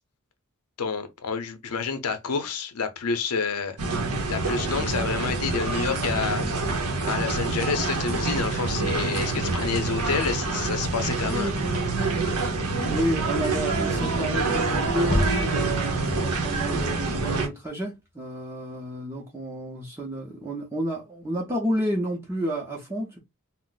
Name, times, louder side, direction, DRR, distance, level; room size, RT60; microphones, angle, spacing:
voice 1, 0.8-3.8 4.3-6.4 7.1-11.5, left 5 dB, 85° left, 0.6 m, -29 dB
sound 1, 3.8-17.5, right 3 dB, 90° right, 0.8 m, -26 dB
voice 2, 12.8-23.2, right 1 dB, 10° right, 0.6 m, -30 dB
sound 2, 15.1-17.0 17.4-17.5, equal, 35° left, 0.5 m, -30 dB
2.5 x 2.0 x 3.8 m
head